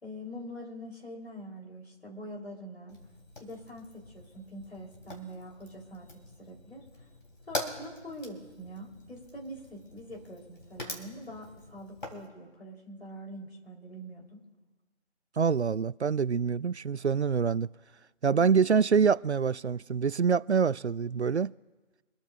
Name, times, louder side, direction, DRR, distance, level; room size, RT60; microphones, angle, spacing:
voice 1, 0.0-3.0 3.4-6.9 7.5-14.4, equal, 60° left, 4.2 m, -44 dB
Fire, 2.9-12.3, left 2 dB, 45° left, 2.9 m, -44 dB
voice 2, 15.4-17.7 18.2-21.5, right 6 dB, 65° right, 0.5 m, -25 dB
26.0 x 13.5 x 2.6 m
figure-of-eight pair, 165°, 36 cm